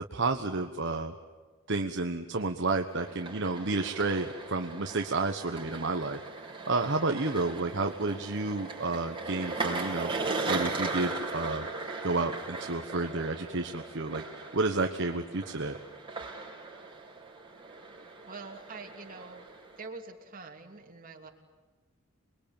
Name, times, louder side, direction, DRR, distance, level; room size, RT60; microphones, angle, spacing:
voice 1, 0.1-1.1 1.7-6.2 6.7-10.1 10.5-11.7 12.0-15.7, right 3 dB, 60° right, 4 dB, 1.2 m, -31 dB
sound 1, 2.9-19.9, right 3 dB, 25° right, 5.0 m, -38 dB
voice 2, 18.2-19.5 19.8-21.3, right 3 dB, 40° right, 3 dB, 3.0 m, -45 dB
28.0 x 21.5 x 9.0 m, 1.4 s
head